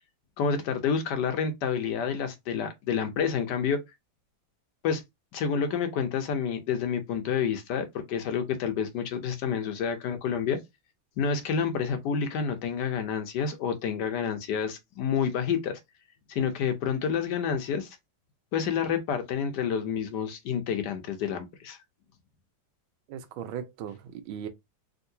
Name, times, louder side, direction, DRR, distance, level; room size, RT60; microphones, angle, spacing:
voice 1, 0.4-3.8 4.8-5.0 5.3-10.6 11.2-15.8 16.3-18.0 18.5-21.8, left 7 dB, 70° left, 1.1 m, -29 dB
voice 2, 23.1-24.5, right 9 dB, 90° right, 1.4 m, -38 dB
3.6 x 2.6 x 2.6 m
omnidirectional pair, 2.1 m